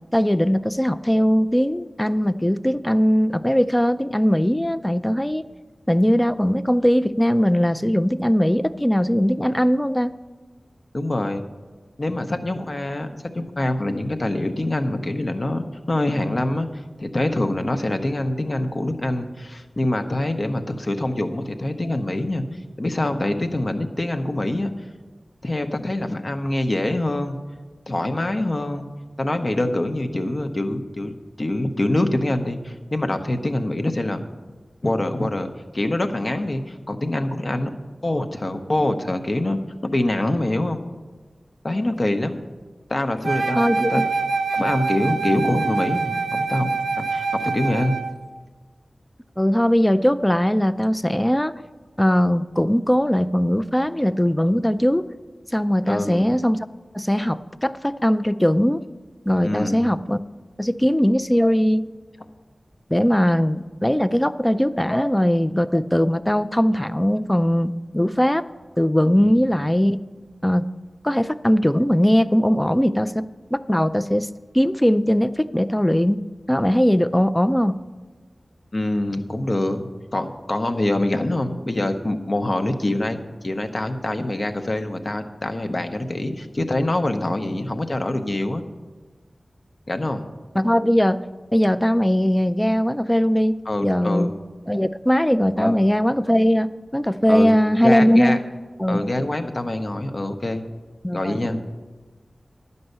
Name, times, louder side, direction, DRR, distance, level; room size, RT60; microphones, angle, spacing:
voice 1, 0.1-5.4 5.9-10.1 43.6-44.1 49.4-51.5 52.0-55.1 55.5-56.6 56.9-58.8 59.3-60.2 60.6-61.8 62.9-68.4 68.8-70.0 70.4-70.7 71.0-74.3 74.5-76.2 76.5-77.8 90.6-91.2 91.5-93.5 93.8-94.3 94.7-98.4 98.8-99.0 101.0-101.6, equal, 10° left, 12 dB, 0.4 m, -20 dB
voice 2, 10.9-11.4 12.0-16.7 17.0-22.4 22.8-24.7 25.4-27.4 27.9-28.9 29.2-34.2 34.8-35.5 35.7-37.7 38.0-40.8 41.6-42.4 42.9-44.0 44.5-48.0 55.8-56.2 59.4-59.8 69.2-69.4 78.7-88.6 89.9-90.3 93.7-94.3 95.6-95.8 97.3-97.6 97.8-98.4 98.9-100.6 101.1-101.6, left 1 dB, 45° left, 7 dB, 0.8 m, -25 dB
Wind instrument woodwind instrument, 43.2-48.1, right 4 dB, 70° right, 0.4 m, -25 dB
11.0 x 5.4 x 7.9 m, 1.3 s
wide cardioid pair, 75°, 0 cm